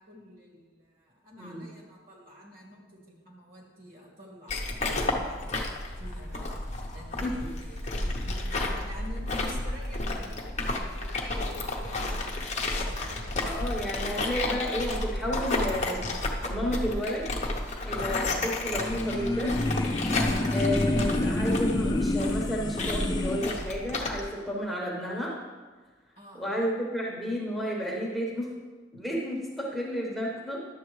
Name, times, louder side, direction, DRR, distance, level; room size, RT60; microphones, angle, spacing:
voice 1, 0.0-6.6 6.9-12.3 12.7-13.8 26.2-26.5, equal, 50° right, -2 dB, 1.9 m, -48 dB
sound 1, 4.5-24.2, left 2 dB, 35° left, 0.8 m, -32 dB
voice 2, 13.5-16.0 16.4-17.4 17.8-19.6 20.5-25.3 26.3-28.5 28.9-30.6, equal, ahead, -4 dB, 1.1 m, -32 dB
sound 2, 18.7-23.6, left 1 dB, 20° left, 0.4 m, -28 dB
11.0 x 7.6 x 3.1 m, 1.4 s
head